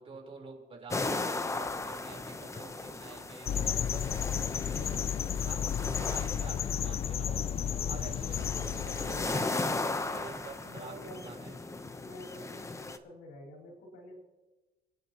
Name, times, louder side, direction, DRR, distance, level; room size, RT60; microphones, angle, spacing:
voice 1, 0.0-5.0 5.4-7.4 7.9-10.9 11.2-11.5, right 4 dB, 35° right, -1 dB, 4.2 m, -48 dB
sound 1, 0.9-13.0, left 3 dB, 15° left, 0.9 m, -37 dB
sound 2, 3.5-9.4, left 8 dB, 35° left, 0.5 m, -32 dB
voice 2, 8.8-9.2 9.9-11.5 11.9-14.2, equal, 85° left, 0 dB, 5.1 m, -49 dB
28.5 x 10.0 x 3.1 m, 1.2 s
cardioid pair, 110°, 17 cm